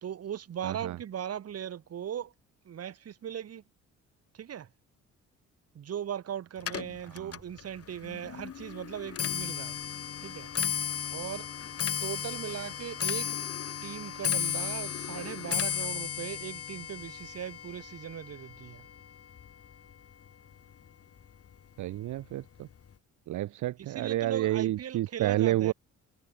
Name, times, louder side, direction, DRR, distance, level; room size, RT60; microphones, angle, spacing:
voice 1, 0.0-2.3 2.7-3.6 4.4-4.7 5.8-9.8 10.2-10.5 11.1-11.5 12.0-13.4 13.8-18.8 23.8-25.7, right 9 dB, 55° right, 1.7 m, -38 dB
voice 2, 0.6-1.0 7.0-7.4 21.8-22.7 23.3-25.7, right 14 dB, 75° right, 1.1 m, -30 dB
Clock, 6.6-19.9 20.3-20.7 21.5-21.6 21.9-22.3 22.6-22.7, left 8 dB, 50° left, 2.5 m, -35 dB
cardioid pair, 90°, 30 cm